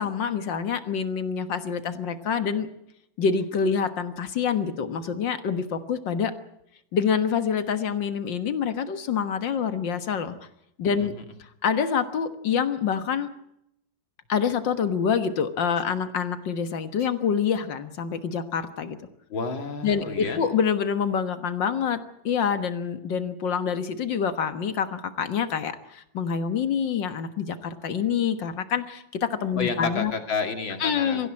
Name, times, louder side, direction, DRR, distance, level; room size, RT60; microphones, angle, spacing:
voice 1, 0.0-2.7 3.2-6.3 6.9-10.4 10.8-11.1 11.6-13.3 14.3-19.0 19.8-30.1 30.8-31.3, left 7 dB, 70° left, 10 dB, 2.1 m, -26 dB
voice 2, 10.9-11.2 19.3-20.4 29.6-31.3, left 4 dB, 85° left, 6 dB, 3.2 m, -30 dB
23.5 x 15.5 x 8.7 m, 0.80 s
omnidirectional pair, 2.1 m